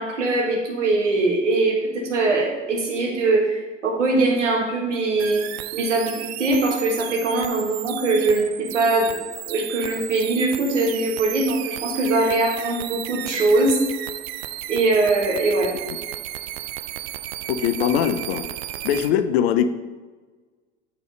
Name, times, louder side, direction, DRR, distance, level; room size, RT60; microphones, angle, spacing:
voice 1, 0.0-5.4 5.7-13.8 14.7-15.7, right 2 dB, 80° right, 0 dB, 1.6 m, -22 dB
sound 1, 5.2-19.1, right 14 dB, 60° right, 0.5 m, -34 dB
voice 2, 17.5-18.5 18.8-19.7, left 9 dB, 60° left, 11 dB, 0.6 m, -21 dB
7.0 x 4.3 x 5.2 m, 1.3 s
figure-of-eight pair, 80°, 36 cm